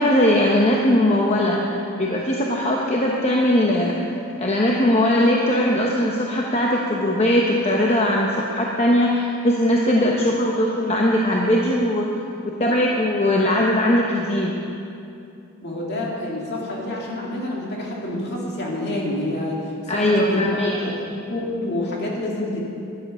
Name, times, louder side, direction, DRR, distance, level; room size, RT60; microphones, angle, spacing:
voice 1, 0.0-1.6 2.0-4.0 4.4-12.1 12.4-14.5 19.9-20.9, left 1 dB, 30° left, -2 dB, 0.9 m, -20 dB
voice 2, 15.6-20.4 20.9-22.6, left 1 dB, 50° left, -3 dB, 2.5 m, -28 dB
13.0 x 11.0 x 5.5 m, 2.7 s
head